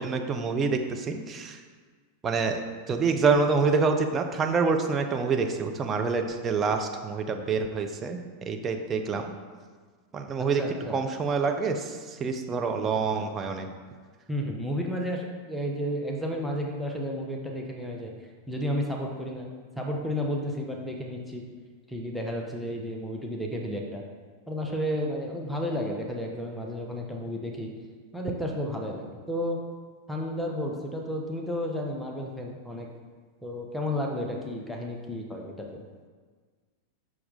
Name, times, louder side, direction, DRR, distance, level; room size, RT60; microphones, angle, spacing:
voice 1, 0.0-1.6 2.2-2.6 2.9-9.3 10.1-10.6 10.9-13.7, right 4 dB, 20° right, 4 dB, 0.7 m, -27 dB
voice 2, 10.4-11.0 14.3-19.5 19.7-21.4 21.9-24.0 24.5-27.7 28.1-29.6 30.1-32.9 33.4-35.8, equal, ahead, 0 dB, 0.9 m, -32 dB
7.0 x 6.1 x 3.8 m, 1.5 s
figure-of-eight pair, 90°, 0 cm